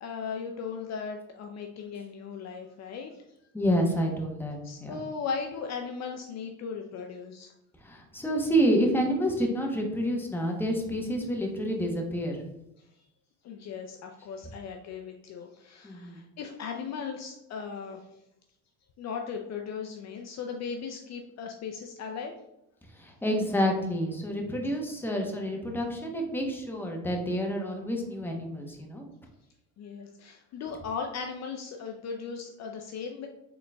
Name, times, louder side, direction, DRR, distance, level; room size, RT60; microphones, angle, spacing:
voice 1, 0.0-3.2 4.6-7.5 13.4-18.1 19.0-22.3 29.8-33.3, left 6 dB, 45° left, 3 dB, 0.5 m, -37 dB
voice 2, 3.5-5.0 7.8-12.4 15.8-16.2 23.0-29.1, equal, 5° left, 1 dB, 0.9 m, -28 dB
4.0 x 3.7 x 2.3 m, 0.86 s
supercardioid pair, 85°, 39 cm